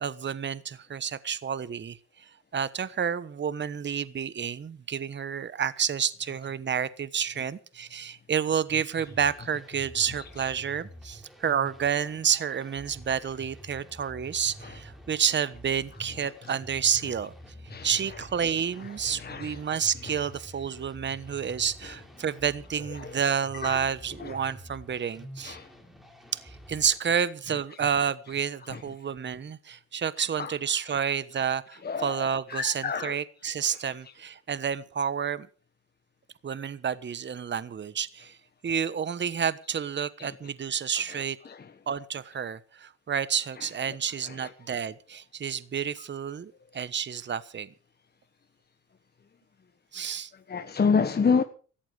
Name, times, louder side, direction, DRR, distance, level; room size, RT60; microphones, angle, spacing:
voice 1, 0.0-17.3 17.8-25.6 26.4-35.5 36.4-38.4 38.6-41.4 41.9-47.7 49.9-50.3, right 7 dB, 35° right, 1.2 m, -30 dB
sound 1, 9.0-27.0, equal, ahead, 3.9 m, -48 dB
voice 2, 19.2-19.5 23.6-23.8 24.2-24.3 25.4-25.6 30.4-30.5 31.8-32.2 32.5-33.1 50.5-51.4, left 5 dB, 30° left, 1.4 m, -26 dB
18.0 x 14.5 x 4.9 m
cardioid pair, 90°, 30 cm